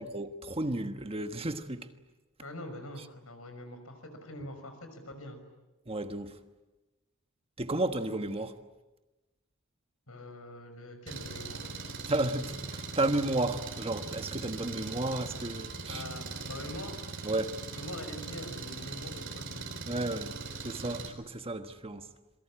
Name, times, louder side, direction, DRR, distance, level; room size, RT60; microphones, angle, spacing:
voice 1, 0.0-1.9 5.9-6.3 7.6-8.6 12.1-16.0 17.2-17.5 19.9-20.3 20.6-22.1, right 2 dB, 30° right, 1.4 m, -32 dB
voice 2, 2.4-5.4 10.1-11.9 15.9-17.0 17.7-19.7, left 1 dB, 85° left, 5.8 m, -44 dB
Engine, 11.1-21.1, right 3 dB, 65° right, 4.0 m, -40 dB
27.5 x 22.5 x 8.8 m
head